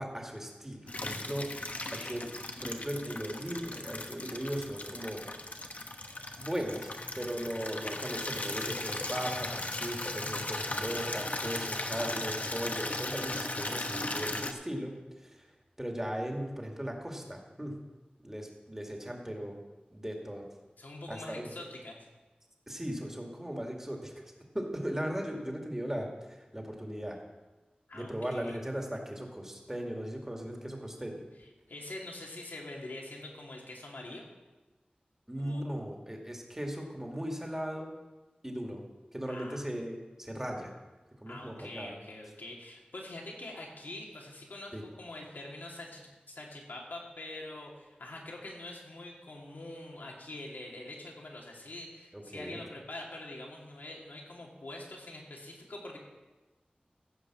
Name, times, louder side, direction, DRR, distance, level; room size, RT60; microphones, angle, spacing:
voice 1, 0.0-1.5 1.9-2.3 2.6-5.2 6.4-15.3 15.8-17.8 18.2-19.6 19.9-20.5 21.1-21.5 22.7-24.1 24.5-27.2 27.9-31.2 35.3-37.9 38.4-38.8 39.1-40.7 41.2-41.9 44.7-44.8 52.1-52.6, equal, 15° right, 1 dB, 2.1 m, -38 dB
Water tap faucet / Liquid, 0.9-14.5, left 2 dB, 55° left, 1.0 m, -37 dB
voice 2, 1.7-2.2 20.8-22.0 27.9-28.6 31.4-34.3 35.4-35.7 39.3-39.6 41.3-46.1 46.3-56.0, left 2 dB, 85° left, -1 dB, 2.5 m, -45 dB
15.5 x 5.2 x 7.4 m, 1.2 s
wide cardioid pair, 60°, 3 cm